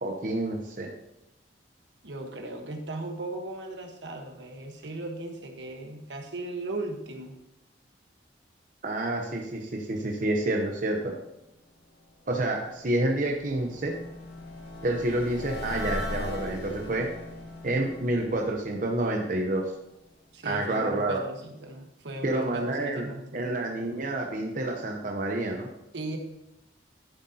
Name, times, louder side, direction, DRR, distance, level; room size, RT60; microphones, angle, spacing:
voice 1, 0.0-0.9 8.8-11.1 12.3-13.9 14.8-17.1 17.6-19.6 20.4-21.2 22.2-23.1 23.3-25.7, right 1 dB, 45° right, 1 dB, 0.8 m, -28 dB
voice 2, 2.0-7.4 20.3-23.5 25.9-26.2, right 2 dB, 70° right, 3 dB, 1.3 m, -37 dB
sound 1, 12.7-19.6, left 1 dB, 60° left, 1.6 m, -39 dB
11.5 x 7.5 x 2.8 m, 0.87 s
head